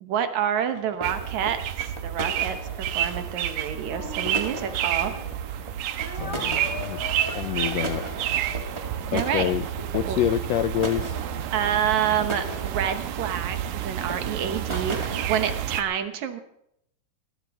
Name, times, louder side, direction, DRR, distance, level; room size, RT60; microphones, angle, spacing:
voice 1, 0.0-5.1 9.1-9.5 10.1-10.2 11.5-16.4, right 9 dB, 65° right, 8 dB, 2.2 m, -28 dB
sound 1, 0.6-15.6, right 2 dB, 25° right, 0.6 m, -38 dB
sound 2, 1.0-15.8, right 11 dB, 90° right, 2.5 m, -30 dB
Speech, 3.8-5.3 6.0-10.0, left 2 dB, 20° left, 1.7 m, -41 dB
voice 2, 6.1-7.0 7.3-8.0 9.1-9.6 9.9-11.2, left 11 dB, 85° left, 10 dB, 1.5 m, -27 dB
20.5 x 16.0 x 3.6 m, 0.77 s
omnidirectional pair, 3.8 m